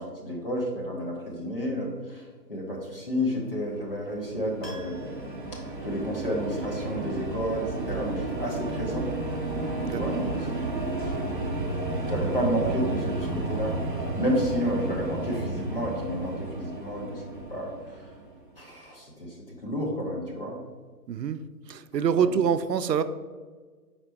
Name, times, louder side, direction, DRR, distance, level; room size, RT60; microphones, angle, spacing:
voice 1, 0.0-2.2 2.5-5.3 5.5-9.1 9.9-10.5 11.0-11.7 12.0-13.7 14.1-17.2 17.5-18.1 18.6-19.4 19.6-20.6 22.2-22.3, equal, 35° left, -2 dB, 1.1 m, -31 dB
sound 1, 3.9-18.4, right 2 dB, 30° right, 0.7 m, -32 dB
Piano, 4.6-6.7 7.0-7.1, equal, 90° left, 1.7 m, -48 dB
voice 2, 21.1-21.4 21.7-23.0, right 7 dB, 80° right, 11 dB, 0.6 m, -25 dB
5.1 x 4.3 x 4.5 m, 1.4 s
hypercardioid pair, 175°, 49 cm